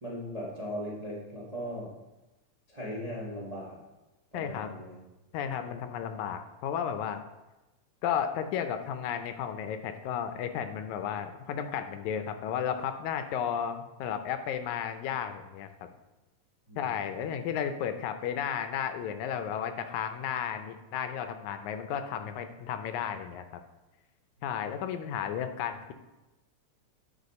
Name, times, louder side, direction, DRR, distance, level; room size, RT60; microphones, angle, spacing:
voice 1, 0.0-1.9 2.7-3.8 4.3-5.0 16.7-17.1, equal, 55° right, -6 dB, 0.4 m, -38 dB
voice 2, 4.3-4.7 5.3-7.2 8.0-15.9 16.8-23.5 24.4-25.9, left 8 dB, 80° left, 9 dB, 2.0 m, -33 dB
10.5 x 4.2 x 4.2 m, 1.0 s
omnidirectional pair, 3.4 m